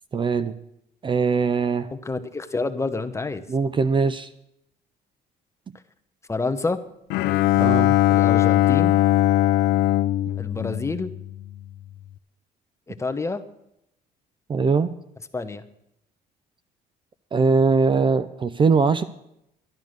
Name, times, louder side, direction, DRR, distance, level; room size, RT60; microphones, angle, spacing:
voice 1, 0.1-0.6 1.0-1.9 3.5-4.3 7.6-8.0 14.5-14.9 17.3-19.0, right 4 dB, 30° right, 14 dB, 0.5 m, -21 dB
voice 2, 1.9-3.5 6.3-6.8 8.1-8.9 10.3-11.1 12.9-13.4 15.3-15.6, left 3 dB, 15° left, 10 dB, 0.9 m, -28 dB
Bowed string instrument, 7.1-11.5, left 14 dB, 75° left, 0.5 m, -20 dB
12.0 x 10.5 x 6.4 m, 0.80 s
cardioid pair, 110°, 17 cm